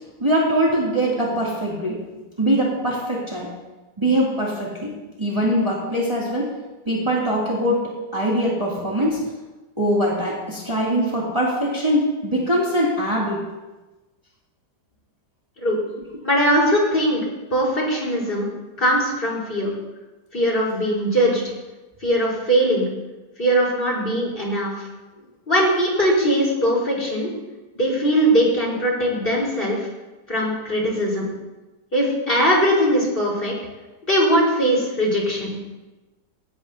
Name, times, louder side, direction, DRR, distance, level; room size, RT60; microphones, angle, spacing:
voice 1, 0.2-2.0 2.4-3.5 4.0-4.9 5.2-6.5 6.9-7.8 8.1-9.2 9.8-13.4, equal, 15° right, -5 dB, 2.8 m, -22 dB
voice 2, 16.2-17.2 17.5-18.5 18.8-19.7 20.3-21.4 22.0-22.9 23.4-24.9 25.5-27.3 27.7-29.8 30.3-31.3 31.9-33.5 34.1-35.5, equal, 30° left, -3 dB, 5.0 m, -20 dB
18.5 x 17.5 x 2.9 m, 1.1 s
omnidirectional pair, 2.0 m